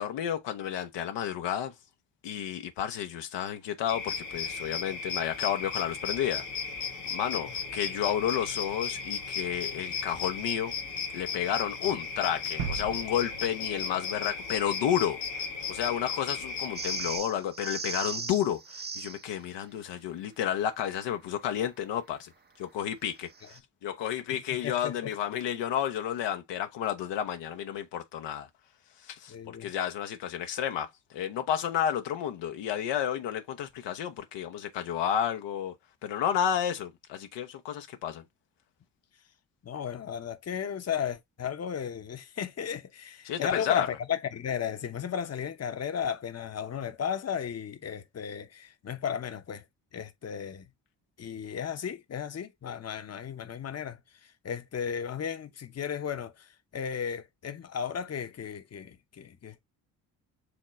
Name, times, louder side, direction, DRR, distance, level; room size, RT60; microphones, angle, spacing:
voice 1, 0.0-1.7 2.2-6.4 7.1-10.7 11.1-15.2 15.7-22.3 22.6-28.5 29.0-35.7 36.0-38.2 43.3-43.9, left 10 dB, 65° left, 0.8 m, -31 dB
sound 1, 3.9-17.2, left 5 dB, 85° left, 1.5 m, -35 dB
sound 2, 12.6-15.3, right 7 dB, 80° right, 1.0 m, -39 dB
sound 3, 16.8-19.3 23.3-23.6, right 5 dB, 20° right, 0.7 m, -37 dB
voice 2, 24.6-25.1 29.3-29.7 39.6-49.6 49.9-50.7 51.2-59.6, left 8 dB, 35° left, 0.9 m, -35 dB
5.0 x 3.0 x 3.0 m
hypercardioid pair, 45°, 47 cm